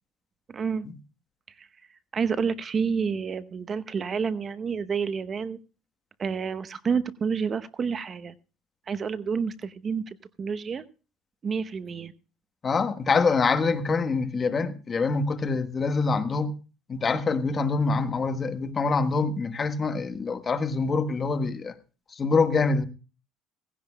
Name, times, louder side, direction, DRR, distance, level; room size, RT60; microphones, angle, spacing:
voice 1, 0.5-0.9 1.6-1.7 2.1-5.6 6.2-8.3 8.9-10.8 11.4-12.1, right 6 dB, 30° right, 0.8 m, -29 dB
voice 2, 12.6-16.5 16.9-21.7 22.1-22.8, left 4 dB, 30° left, 1.3 m, -25 dB
18.0 x 16.0 x 2.3 m
cardioid pair, 115°, 0 cm